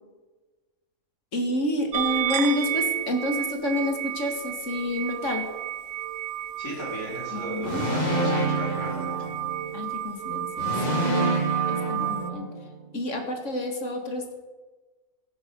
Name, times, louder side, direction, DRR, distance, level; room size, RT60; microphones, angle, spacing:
voice 1, 1.3-5.5 7.3-7.9 9.7-11.1 11.7-12.5 12.9-14.3, left 1 dB, 60° left, 3 dB, 2.3 m, -29 dB
sound 1, 1.9-12.3, right 12 dB, 65° right, 1.0 m, -31 dB
voice 2, 6.6-9.1, right 1 dB, 85° left, -5 dB, 5.0 m, -35 dB
sound 2, 7.6-9.8 10.6-12.8, right 2 dB, 30° left, 2.0 m, -27 dB
14.5 x 11.0 x 5.3 m, 1.3 s
omnidirectional pair, 1.4 m